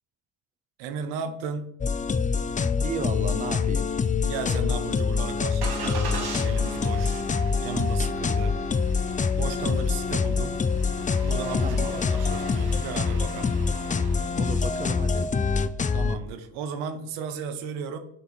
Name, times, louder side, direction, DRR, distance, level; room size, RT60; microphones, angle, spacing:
voice 1, 0.8-1.7 4.2-7.2 7.6-8.5 9.4-10.6 11.2-13.6 15.9-18.0, right 7 dB, 85° right, 8 dB, 0.9 m, -35 dB
sound 1, 1.8-16.2, left 5 dB, 20° left, 0.4 m, -25 dB
voice 2, 2.8-3.9 11.6-12.0 14.3-15.3, right 5 dB, 15° right, 10 dB, 0.7 m, -34 dB
Engine starting, 4.6-15.3, right 4 dB, 50° right, 1.6 m, -41 dB
6.9 x 3.6 x 4.5 m, 0.70 s
hypercardioid pair, 50°, 47 cm